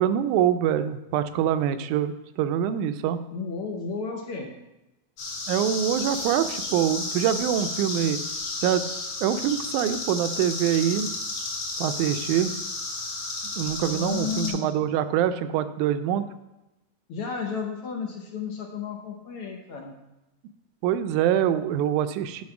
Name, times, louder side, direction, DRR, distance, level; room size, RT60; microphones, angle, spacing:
voice 1, 0.0-3.2 5.5-8.2 8.6-8.8 9.2-11.1 11.8-12.5 13.6-16.3 20.8-22.4, right 10 dB, 80° right, 11 dB, 1.9 m, -24 dB
voice 2, 3.3-4.5 13.8-14.8 17.1-20.0, left 6 dB, 75° left, 2 dB, 1.3 m, -33 dB
sound 1, 5.2-14.5, left 3 dB, 55° left, 3.1 m, -32 dB
9.5 x 4.6 x 5.9 m, 0.96 s
omnidirectional pair, 3.6 m